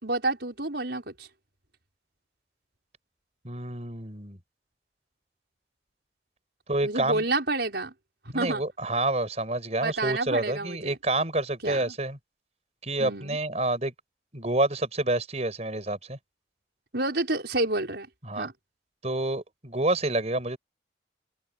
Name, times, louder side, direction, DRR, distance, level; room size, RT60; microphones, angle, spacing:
voice 1, 0.0-1.3 6.8-7.9 8.3-8.6 9.8-11.0 11.6-11.9 13.0-13.4 16.9-18.1 18.4-18.5, right 2 dB, 70° right, 5.2 m, -29 dB
voice 2, 3.4-4.4 6.7-7.2 8.3-12.2 12.8-13.9 14.3-16.2 18.2-18.5 19.0-20.6, right 2 dB, 40° right, 5.1 m, -28 dB
head